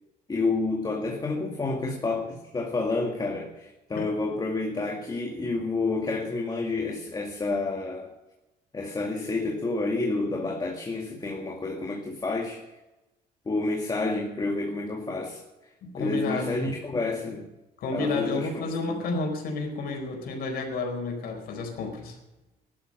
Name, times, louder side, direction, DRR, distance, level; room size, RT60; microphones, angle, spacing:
voice 1, 0.3-8.1 8.7-12.7 13.5-15.4 15.9-17.5 17.9-19.1, left 3 dB, 25° left, 1 dB, 2.1 m, -29 dB
voice 2, 15.8-16.5 17.8-22.2, left 3 dB, 65° left, 2 dB, 4.6 m, -31 dB
15.5 x 12.0 x 6.5 m, 1.0 s
cardioid pair, 110°, 17 cm